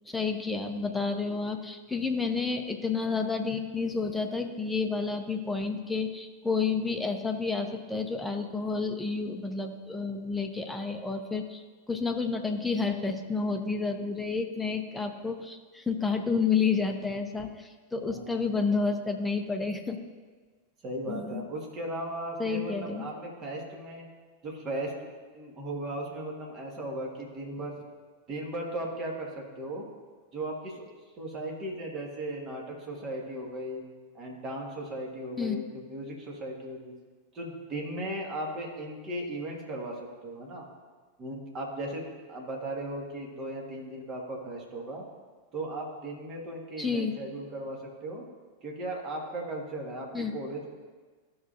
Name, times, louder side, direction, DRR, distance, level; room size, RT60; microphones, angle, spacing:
voice 1, 0.1-20.0 21.1-21.4 22.4-23.1 35.4-35.6 46.8-47.1 50.1-50.3, left 4 dB, 5° left, 4 dB, 0.8 m, -30 dB
voice 2, 18.1-18.5 20.8-24.1 24.4-25.1 25.3-27.8 28.3-29.8 30.3-30.8 31.2-33.8 34.1-36.9 37.3-40.6 41.2-45.0 45.5-48.2 48.6-50.1 50.3-50.7, right 1 dB, 30° right, -1 dB, 1.9 m, -37 dB
14.0 x 5.9 x 2.7 m, 1.4 s
figure-of-eight pair, 90°, 0 cm